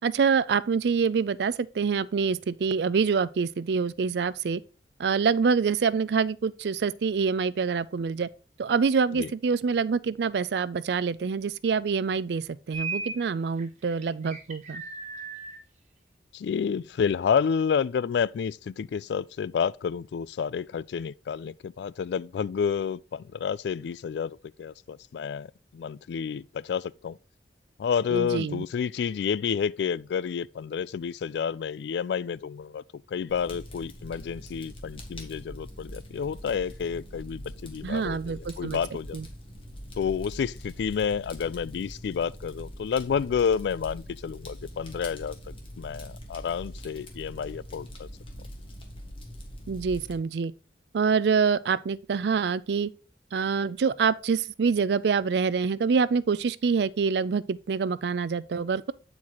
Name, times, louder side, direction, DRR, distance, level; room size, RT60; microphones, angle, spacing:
voice 1, 0.0-4.6 5.0-8.3 8.6-14.8 28.1-28.6 37.8-38.8 39.1-39.3 49.7-50.5 50.9-52.9 53.3-58.9, right 5 dB, 70° right, 0.4 m, -26 dB
sound 1, 12.7-13.2 13.6-15.6, right 4 dB, 40° right, 1.4 m, -36 dB
voice 2, 16.3-27.2 27.8-39.2 40.0-48.1, left 6 dB, 75° left, 0.3 m, -30 dB
Fire, 33.3-50.1, equal, 30° left, 1.4 m, -43 dB
8.6 x 4.6 x 3.9 m
head